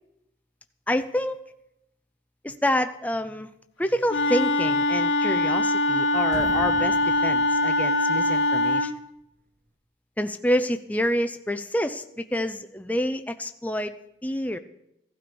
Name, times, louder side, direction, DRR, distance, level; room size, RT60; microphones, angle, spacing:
voice 1, 0.9-1.4 2.4-3.5 3.8-8.9 10.2-14.6, equal, 10° left, 8 dB, 0.5 m, -28 dB
Wind instrument woodwind instrument, 4.1-8.9, left 2 dB, 75° left, 1.4 m, -23 dB
sound 1, 5.1-5.9 6.2-8.3, equal, 70° right, 2.5 m, -42 dB
16.5 x 12.5 x 5.3 m, 0.83 s
head